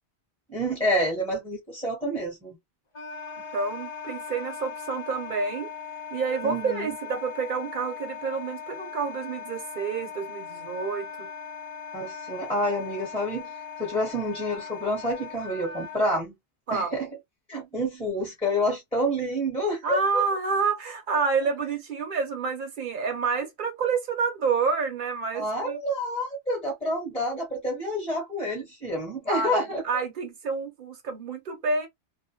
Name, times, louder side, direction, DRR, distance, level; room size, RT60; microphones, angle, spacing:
voice 1, 0.5-2.6 6.4-6.9 11.9-13.5 13.8-16.3 16.7-17.1 17.5-20.2 25.3-29.8, equal, 5° left, 0.9 m, -28 dB
Wind instrument woodwind instrument, 2.9-16.0, left 7 dB, 40° left, 0.5 m, -39 dB
voice 2, 3.5-5.7 6.1-11.3 16.7-17.0 19.8-25.8 29.3-31.9, right 5 dB, 50° right, 0.9 m, -28 dB
2.4 x 2.1 x 2.8 m
omnidirectional pair, 1.2 m